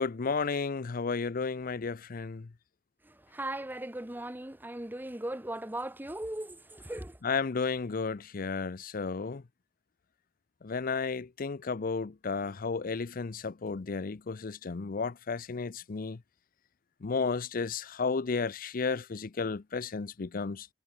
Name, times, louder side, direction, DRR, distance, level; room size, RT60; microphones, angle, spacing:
voice 1, 0.0-2.5 7.2-9.4 10.6-16.2 17.0-20.7, left 4 dB, 50° left, 0.6 m, -33 dB
voice 2, 3.0-7.2, right 1 dB, 10° right, 1.2 m, -38 dB
head